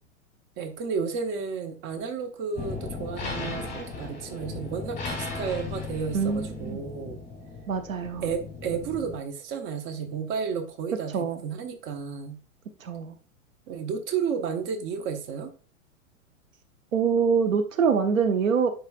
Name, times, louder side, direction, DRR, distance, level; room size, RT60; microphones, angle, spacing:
voice 1, 0.6-7.2 8.2-12.4 13.7-15.5, right 6 dB, 30° right, 5 dB, 1.0 m, -32 dB
sound 1, 2.5-9.2, left 4 dB, 15° left, 2.3 m, -36 dB
voice 2, 6.1-6.8 7.7-8.3 11.1-11.4 12.8-13.2 16.9-18.7, right 6 dB, 70° right, 7 dB, 0.9 m, -24 dB
10.5 x 4.1 x 2.3 m, 0.39 s
figure-of-eight pair, 100°, 41 cm